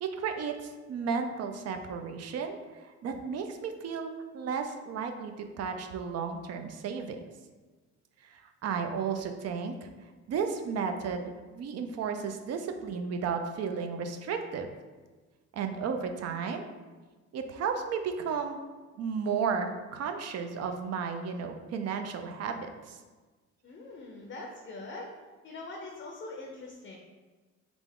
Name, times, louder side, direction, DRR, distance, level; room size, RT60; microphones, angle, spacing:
voice 1, 0.0-7.2 8.3-9.7 10.3-14.7 15.5-16.6 17.3-18.6 19.0-23.0, right 6 dB, 55° right, 6 dB, 0.4 m, -33 dB
voice 2, 23.6-25.2 25.4-27.0, left 2 dB, 40° left, 0 dB, 0.5 m, -42 dB
3.4 x 2.4 x 3.5 m, 1.3 s
cardioid pair, 90°, 30 cm